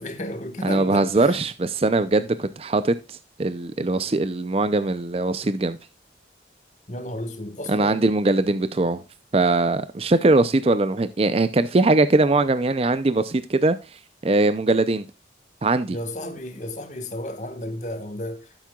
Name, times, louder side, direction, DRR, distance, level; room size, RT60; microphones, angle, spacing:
voice 1, 0.0-1.4 6.9-8.0 15.9-18.6, left 1 dB, 40° left, 1.5 m, -33 dB
voice 2, 0.6-5.8 7.7-9.0 9.3-13.8 14.2-15.0 15.6-16.0, right 2 dB, 30° right, 0.5 m, -21 dB
13.0 x 7.4 x 2.3 m
head